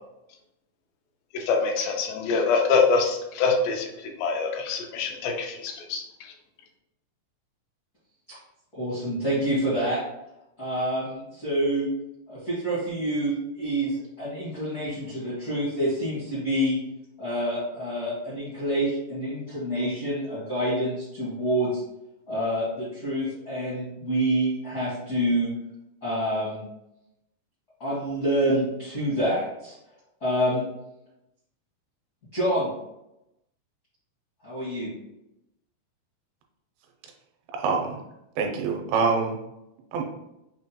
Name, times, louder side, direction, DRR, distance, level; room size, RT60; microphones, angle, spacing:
voice 1, 1.3-3.9 4.2-6.0, left 4 dB, 85° left, 2 dB, 2.4 m, -24 dB
voice 2, 8.7-10.0 10.6-11.9 12.3-16.8 17.2-21.8 22.3-25.5 26.0-26.6 27.8-29.7 30.2-30.7 32.3-32.7 34.4-34.9, right 1 dB, 60° left, -11 dB, 0.9 m, -27 dB
voice 3, 37.5-38.0 38.4-39.4 39.9-40.0, right 4 dB, 90° right, 4 dB, 2.4 m, -25 dB
5.9 x 2.2 x 2.7 m, 0.87 s
omnidirectional pair, 4.1 m